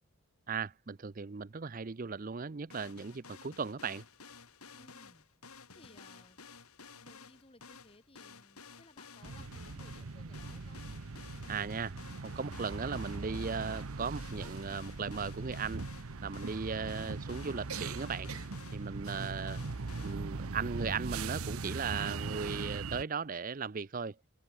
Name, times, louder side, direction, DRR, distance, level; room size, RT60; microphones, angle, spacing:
voice 1, 0.5-4.0 11.5-11.9 12.2-15.8 16.2-18.3 18.7-19.6 20.0-24.2, right 5 dB, 40° right, 0.5 m, -37 dB
sound 1, 2.7-20.2, left 5 dB, 85° left, 4.2 m, -53 dB
voice 2, 4.7-5.3 5.7-6.4 6.9-10.8, left 2 dB, 25° left, 2.3 m, -61 dB
sound 2, 9.2-23.0, right 4 dB, 75° right, 0.9 m, -40 dB
head